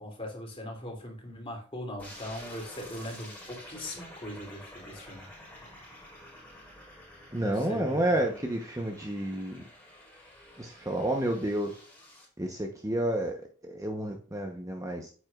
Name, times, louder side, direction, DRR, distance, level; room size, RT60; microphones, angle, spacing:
voice 1, 0.0-5.3 7.4-8.2, left 1 dB, 25° left, 0 dB, 3.0 m, -40 dB
sound 1, 2.0-12.3, left 1 dB, 10° left, 4.4 m, -49 dB
voice 2, 7.3-9.6 10.6-11.8 12.4-13.3 13.6-15.1, right 1 dB, 15° right, 2 dB, 0.9 m, -30 dB
9.7 x 7.8 x 2.4 m, 0.40 s
head